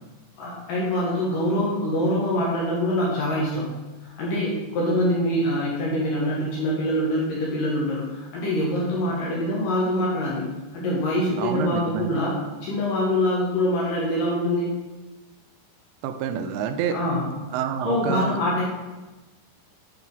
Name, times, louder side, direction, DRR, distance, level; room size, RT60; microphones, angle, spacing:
voice 1, 0.4-3.7 4.0-14.7 16.9-17.4 17.9-18.7, left 1 dB, 70° left, -5 dB, 2.2 m, -24 dB
voice 2, 11.4-12.1 16.0-17.0 17.5-18.4, right 8 dB, 90° right, 8 dB, 2.8 m, -27 dB
8.7 x 4.1 x 3.5 m, 1.1 s
omnidirectional pair, 4.9 m